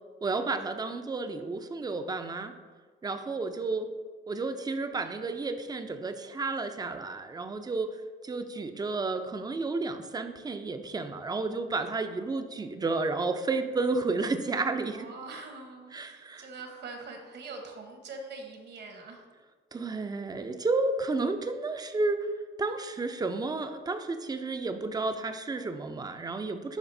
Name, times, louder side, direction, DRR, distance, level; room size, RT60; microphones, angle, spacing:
voice 1, 0.2-2.5 3.0-3.9 4.3-7.9 8.2-15.1 15.9-16.5 19.7-22.2 22.6-26.8, right 3 dB, 20° right, 8 dB, 0.5 m, -31 dB
voice 2, 14.9-19.2, right 3 dB, 60° right, 3 dB, 1.1 m, -43 dB
11.0 x 3.9 x 2.7 m, 1.5 s
cardioid pair, 90°, 20 cm